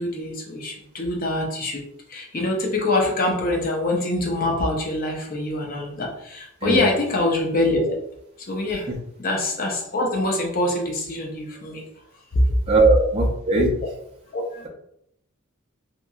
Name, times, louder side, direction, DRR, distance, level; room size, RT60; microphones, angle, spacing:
voice 1, 0.0-1.8 2.1-7.9 8.5-8.8 9.2-11.8 12.3-12.5 14.3-14.6, left 2 dB, 45° left, 0 dB, 0.6 m, -24 dB
voice 2, 12.7-13.7, right 2 dB, 30° right, -4 dB, 0.5 m, -19 dB
2.9 x 2.5 x 2.3 m, 0.75 s
head